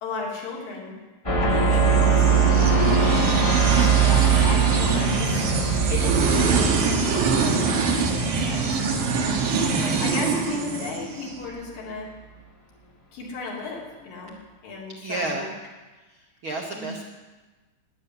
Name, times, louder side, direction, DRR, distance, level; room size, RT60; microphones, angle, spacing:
voice 1, 0.0-0.9 1.4-5.5 5.9-6.7 7.1-9.1 9.8-12.1 13.1-14.4 14.6-15.5 16.7-17.0, left 3 dB, 75° left, -2 dB, 4.7 m, -35 dB
sound 1, 1.2-9.8, right 6 dB, 40° left, 0.4 m, -22 dB
sound 2, 1.6-11.3, right 4 dB, 85° right, 3.4 m, -24 dB
voice 2, 4.0-4.3 15.0-15.5 16.0-17.0, right 2 dB, 70° right, 2 dB, 1.2 m, -32 dB
11.5 x 10.5 x 9.6 m, 1.2 s
omnidirectional pair, 3.9 m